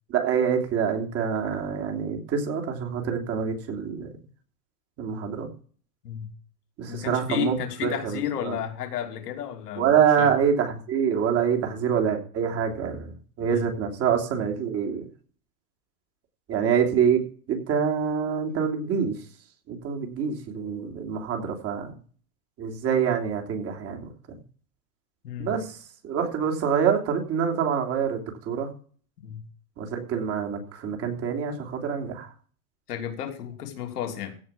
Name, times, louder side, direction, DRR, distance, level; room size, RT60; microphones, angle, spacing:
voice 1, 0.1-4.1 5.0-5.5 6.8-7.6 7.8-8.6 9.8-15.1 16.5-17.2 17.5-19.1 19.7-21.9 22.6-24.4 25.4-25.8 26.0-28.7 29.8-32.3, right 7 dB, 30° right, 3.2 m, -26 dB
voice 2, 6.8-10.3 13.4-13.7 25.2-25.6 29.2-29.5 32.9-34.4, left 9 dB, 90° left, 3.0 m, -33 dB
16.0 x 5.4 x 7.1 m
supercardioid pair, 150°, 45 cm